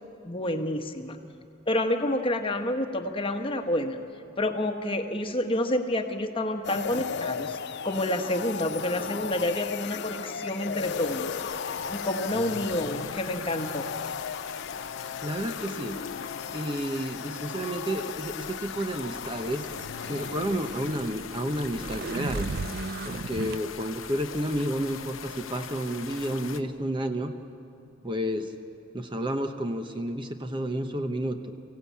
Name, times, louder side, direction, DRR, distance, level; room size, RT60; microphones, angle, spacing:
voice 1, 0.2-1.2 1.7-4.0 4.4-7.6 7.8-11.3 11.9-13.8, left 1 dB, 25° left, 5 dB, 1.2 m, -29 dB
sound 1, 6.6-20.9, left 6 dB, 60° left, 0.5 m, -36 dB
sound 2, 10.8-26.6, left 7 dB, 80° left, 0.9 m, -41 dB
voice 2, 15.2-16.0 16.5-19.7 20.1-22.5 23.0-27.4 28.0-28.5 28.9-31.5, equal, 25° right, 7 dB, 0.9 m, -31 dB
sound 3, 19.0-23.6, right 3 dB, 50° right, 0.6 m, -36 dB
24.0 x 16.5 x 8.4 m, 2.5 s
head